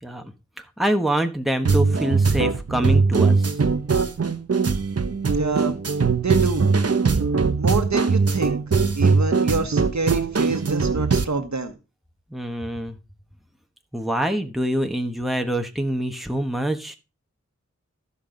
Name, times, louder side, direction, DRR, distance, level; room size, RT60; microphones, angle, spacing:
voice 1, 0.0-3.6 12.3-13.0 13.9-17.0, right 1 dB, ahead, 1.3 m, -25 dB
sound 1, 1.6-11.2, right 4 dB, 55° right, 0.9 m, -21 dB
voice 2, 5.3-5.8 6.2-6.7 7.6-8.6 8.9-11.8, right 3 dB, 75° right, 1.5 m, -26 dB
14.0 x 5.6 x 3.9 m
wide cardioid pair, 50°, 29 cm